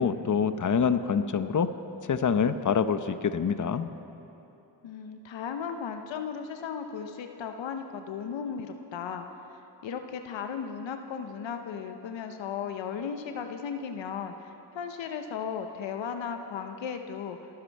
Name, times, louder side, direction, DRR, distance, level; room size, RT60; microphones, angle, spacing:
voice 1, 0.0-1.7 2.1-3.9, left 6 dB, 45° left, 10 dB, 0.9 m, -26 dB
voice 2, 4.8-9.3 9.8-17.4, left 7 dB, 85° left, 6 dB, 0.9 m, -36 dB
27.0 x 9.7 x 4.6 m, 3.0 s
cardioid pair, 45°, 44 cm